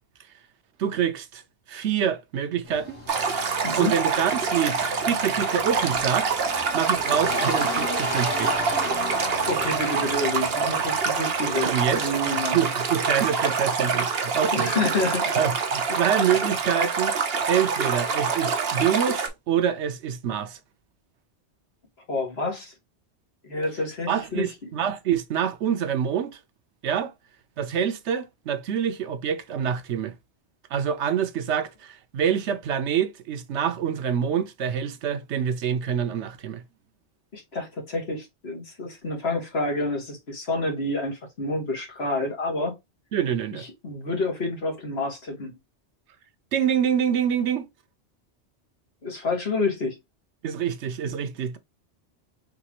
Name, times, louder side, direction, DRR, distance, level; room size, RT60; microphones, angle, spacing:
voice 1, 0.8-1.4 1.7-3.0 3.8-4.8 5.1-6.4 6.7-8.6 11.6-12.0 12.5-14.7 15.4-17.1 17.5-20.6 24.1-26.4 26.8-27.1 27.6-30.1 30.7-36.6 43.1-43.6 46.5-47.7 50.4-51.6, right 8 dB, 85° right, 1.0 m, -26 dB
sound 1, 2.6-12.3, left 1 dB, 80° left, 2.5 m, -35 dB
Stream, 3.1-19.3, right 5 dB, 65° right, 1.1 m, -26 dB
voice 2, 9.5-12.6 14.5-15.5 22.1-22.7 23.4-24.5 37.3-42.7 43.5-45.5 49.0-50.0, left 2 dB, 65° left, 2.0 m, -28 dB
5.0 x 3.1 x 2.9 m
omnidirectional pair, 1.1 m